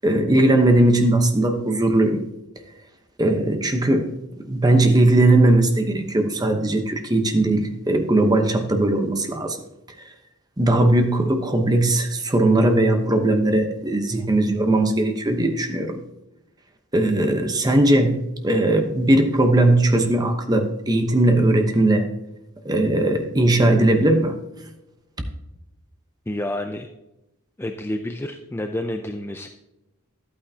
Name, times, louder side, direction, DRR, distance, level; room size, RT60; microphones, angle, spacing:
voice 1, 0.0-2.2 3.2-4.1 4.4-9.6 10.6-16.0 16.9-22.1 22.6-24.3, right 1 dB, 20° right, 6 dB, 0.9 m, -19 dB
voice 2, 26.3-26.9 27.6-29.5, left 1 dB, 10° left, 5 dB, 0.4 m, -29 dB
11.5 x 8.7 x 2.8 m, 0.95 s
head